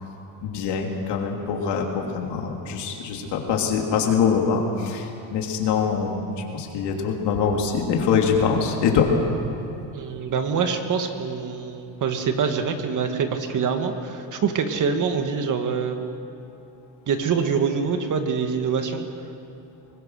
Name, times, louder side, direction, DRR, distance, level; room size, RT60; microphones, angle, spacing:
voice 1, 0.4-6.3 6.5-9.1, left 6 dB, 70° left, 1 dB, 3.3 m, -24 dB
voice 2, 9.9-16.1 17.1-19.1, right 6 dB, 45° right, 6 dB, 2.0 m, -25 dB
23.5 x 20.0 x 6.6 m, 2.8 s
cardioid pair, 110°, 42 cm